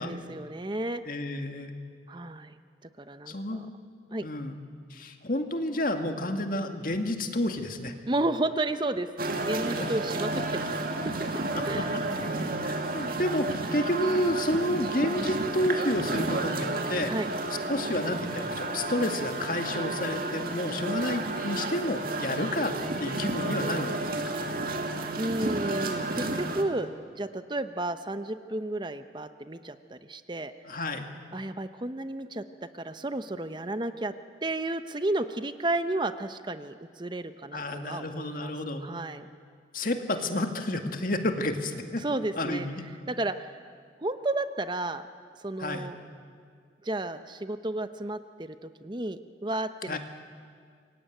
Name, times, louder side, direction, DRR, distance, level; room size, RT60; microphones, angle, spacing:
voice 1, 0.0-1.0 2.1-2.6 3.0-3.7 4.1-4.3 8.1-9.1 9.4-10.8 11.7-11.9 17.1-17.3 24.8-26.9 27.2-30.5 31.3-32.4 32.7-34.1 34.4-38.5 38.8-39.3 42.0-42.7 43.1-43.5 44.0-45.0 45.4-46.0 46.8-50.0, right 2 dB, 25° right, 10 dB, 0.8 m, -32 dB
voice 2, 1.0-1.7 3.3-3.7 4.2-4.6 4.9-7.9 9.7-9.9 11.5-11.8 12.6-17.1 17.7-24.0 30.6-31.1 37.5-38.9 39.7-42.0 42.4-42.8 45.6-45.9 49.9-50.0, left 1 dB, 50° left, 5 dB, 2.1 m, -30 dB
sound 1, 9.2-26.6, right 2 dB, 55° right, 2.2 m, -31 dB
27.5 x 23.0 x 9.3 m, 2.1 s
head